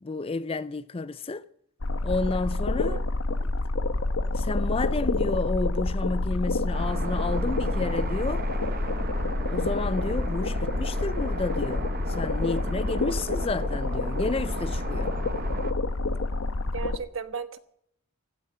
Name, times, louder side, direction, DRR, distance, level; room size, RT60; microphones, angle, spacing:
voice 1, 0.0-1.4 2.0-3.1 4.3-8.5 9.5-15.1, left 3 dB, 25° left, 0.5 m, -31 dB
sound 1, 1.8-17.0, left 2 dB, 70° left, 1.0 m, -28 dB
sound 2, 6.7-15.7, right 3 dB, 45° right, 0.9 m, -37 dB
voice 2, 16.7-17.6, right 5 dB, 65° right, 1.2 m, -35 dB
16.0 x 12.5 x 5.6 m
head